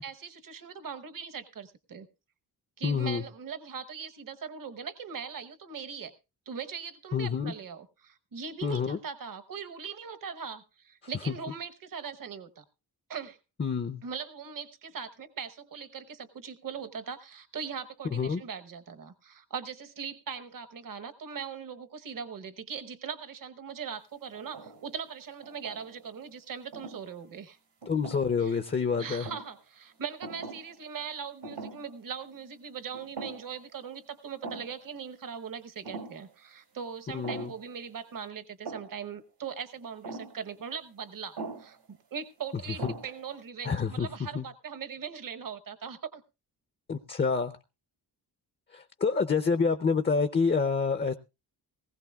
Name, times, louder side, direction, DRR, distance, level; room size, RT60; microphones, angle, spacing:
voice 1, 0.0-2.1 2.8-6.1 6.5-12.6 13.1-13.4 14.0-27.6 28.4-28.5 29.0-46.2, right 6 dB, 55° right, 9 dB, 1.0 m, -40 dB
voice 2, 2.8-3.2 7.1-7.5 8.6-9.0 11.3-11.4 13.6-14.0 18.1-18.4 27.9-29.3 37.1-37.5 42.8-42.9 43.6-44.1 44.3-44.4 46.9-47.5 48.7-51.1, left 5 dB, 30° left, 10 dB, 0.6 m, -27 dB
sound 1, 24.3-24.9 25.4-26.1 26.7-27.0 27.8-28.5 29.0-29.5 30.2-30.7 31.0-31.1 31.4-31.9 32.3-32.4 32.9-33.6 33.9-34.0 34.4-34.8 35.8-36.2 37.2-37.7 38.6-39.0 40.0-40.4 41.4-41.7 42.4-42.5 42.8-43.3, right 4 dB, 85° right, 2.9 m, -42 dB
19.0 x 16.0 x 2.3 m, 0.28 s
wide cardioid pair, 120°, 40 cm